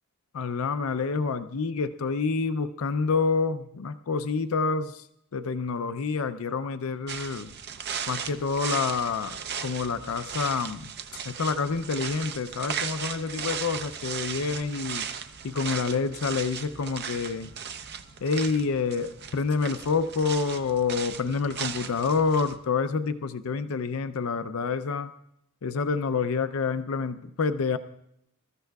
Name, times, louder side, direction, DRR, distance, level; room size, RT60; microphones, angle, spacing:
voice 1, 0.3-5.0 5.3-7.5 8.1-10.9 11.3-15.1 15.4-17.5 18.2-25.1 25.6-27.8, left 4 dB, 70° left, 10 dB, 0.5 m, -28 dB
sound 1, 7.1-22.6, right 7 dB, 50° right, 0.7 m, -37 dB
26.0 x 13.5 x 2.3 m, 0.76 s
head